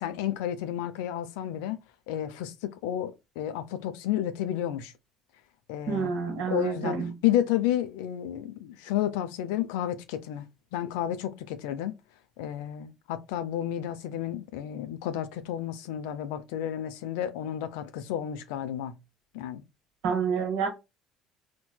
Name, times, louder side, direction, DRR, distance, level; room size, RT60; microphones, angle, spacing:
voice 1, 0.0-1.8 2.1-4.9 5.7-6.1 6.5-10.5 10.7-12.0 12.4-19.0 19.3-19.6, left 11 dB, 65° left, 0.3 m, -31 dB
voice 2, 5.9-7.1 20.0-20.7, right 5 dB, 60° right, 1.0 m, -28 dB
4.2 x 2.1 x 2.2 m
figure-of-eight pair, 60°, 0 cm